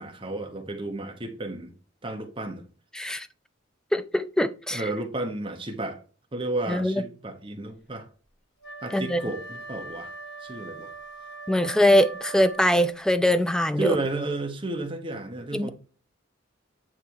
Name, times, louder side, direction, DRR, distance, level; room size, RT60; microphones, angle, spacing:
voice 1, 0.0-1.7 2.0-2.7 4.7-6.0 6.3-8.1 8.8-10.1 10.4-10.9 13.8-15.7, right 2 dB, 25° right, 1.1 m, -32 dB
voice 2, 2.9-3.3 3.9-4.8 6.7-6.9 8.9-9.2 11.5-14.0 15.5-15.7, left 1 dB, 5° left, 0.4 m, -22 dB
Wind instrument woodwind instrument, 8.6-13.1, right 3 dB, 60° left, 2.4 m, -41 dB
8.7 x 3.3 x 4.7 m
head